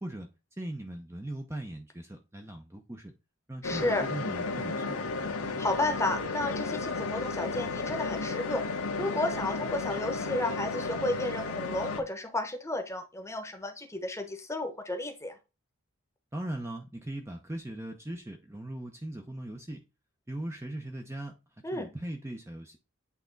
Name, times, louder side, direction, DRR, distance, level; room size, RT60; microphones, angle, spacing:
voice 1, 0.0-3.1 3.5-5.0 16.3-19.8 20.3-22.8, right 1 dB, 10° right, 4 dB, 0.6 m, -39 dB
sound 1, 3.6-12.0, left 3 dB, 90° left, 1.2 m, -33 dB
voice 2, 3.6-4.1 5.6-8.6 8.9-15.3 21.6-21.9, left 2 dB, 15° left, 6 dB, 0.9 m, -32 dB
8.5 x 3.5 x 3.9 m, 0.28 s
head